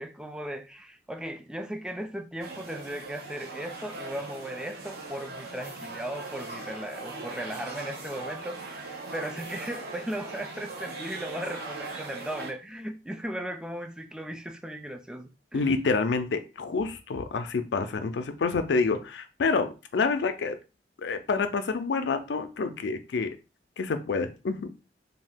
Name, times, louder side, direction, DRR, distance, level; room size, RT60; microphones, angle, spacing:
voice 1, 0.0-15.7, right 1 dB, 5° right, 0.3 m, -37 dB
sound 1, 2.4-12.5, right 3 dB, 65° right, 0.9 m, -40 dB
voice 2, 15.5-20.6 21.0-23.3 23.8-24.7, left 4 dB, 75° left, 0.4 m, -28 dB
2.7 x 2.3 x 3.4 m
head